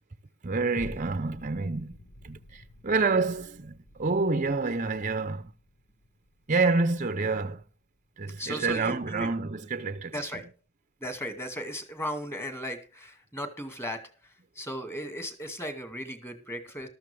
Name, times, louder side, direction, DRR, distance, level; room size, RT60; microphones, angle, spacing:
voice 1, 0.4-2.0 2.2-5.5 6.5-7.6 8.2-10.2, right 3 dB, 35° right, 0.7 m, -28 dB
sound 1, 0.8-9.3 9.8-9.9, left 1 dB, 65° left, 1.4 m, -50 dB
voice 2, 8.4-9.3 10.1-10.5 11.0-16.9, equal, 10° left, 2.2 m, -36 dB
14.0 x 13.0 x 3.5 m
head